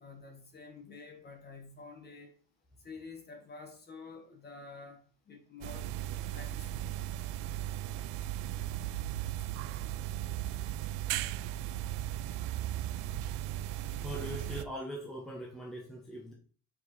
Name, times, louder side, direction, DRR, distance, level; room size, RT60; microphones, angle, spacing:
voice 1, 0.0-2.3 2.8-5.9 6.3-6.9, left 4 dB, 25° left, 1.1 m, -49 dB
sound 1, 5.6-14.6, right 13 dB, 70° right, 0.5 m, -36 dB
voice 2, 14.0-16.3, equal, ahead, 0.8 m, -41 dB
4.9 x 4.7 x 4.1 m
cardioid pair, 165°, 43 cm